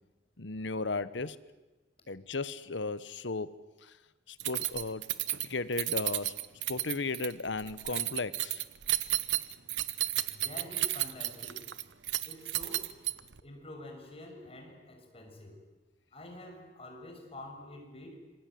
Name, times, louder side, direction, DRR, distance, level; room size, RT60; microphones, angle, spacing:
voice 1, 0.4-1.4 2.1-3.9 4.3-5.1 5.4-6.4 6.7-8.6, left 3 dB, 90° left, 15 dB, 1.2 m, -35 dB
Keys jangling, 4.4-13.4, right 15 dB, 85° right, 1.1 m, -33 dB
voice 2, 10.3-11.7 12.2-13.0 13.4-15.7 16.1-18.2, left 1 dB, 35° left, 3 dB, 6.4 m, -47 dB
26.5 x 23.5 x 9.4 m, 1.1 s
head